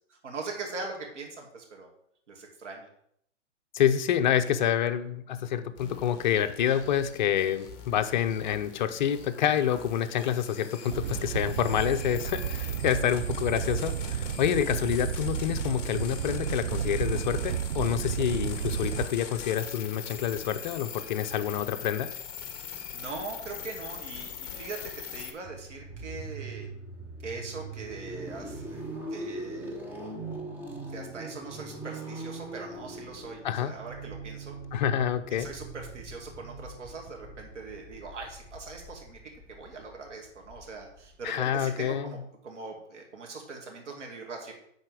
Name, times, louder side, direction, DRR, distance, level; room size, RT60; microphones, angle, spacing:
voice 1, 0.1-1.9 2.3-2.9 22.7-26.7 27.2-29.7 30.9-34.6 35.3-42.2 42.4-44.5, right 4 dB, 75° right, 1 dB, 2.4 m, -41 dB
voice 2, 3.7-22.1 33.4-33.7 34.7-35.5 41.2-42.2, left 9 dB, 40° left, 9 dB, 0.6 m, -27 dB
sound 1, 5.8-25.3, left 7 dB, 25° left, 1.2 m, -42 dB
Animal, 10.9-19.1, right 9 dB, 45° right, 0.5 m, -32 dB
sound 2, 25.4-41.6, right 2 dB, 5° right, 0.7 m, -42 dB
9.6 x 4.2 x 4.8 m, 0.70 s
hypercardioid pair, 145°, 36 cm